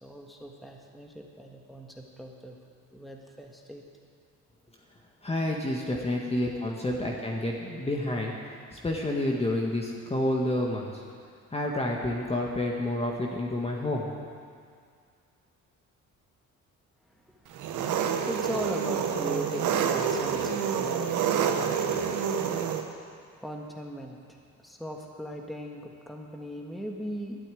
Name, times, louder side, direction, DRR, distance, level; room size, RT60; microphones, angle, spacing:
voice 1, 0.0-2.6 2.9-3.8 6.4-6.7 7.0-7.2 17.1-21.9 23.0-27.4, equal, ahead, 0 dB, 1.6 m, -39 dB
voice 2, 5.2-8.3 8.7-11.0 11.5-14.1, left 1 dB, 20° left, -1 dB, 1.7 m, -29 dB
Engine, 17.5-22.8, right 7 dB, 80° right, 1.1 m, -28 dB
12.0 x 8.8 x 9.2 m, 2.2 s
cardioid pair, 90°, 30 cm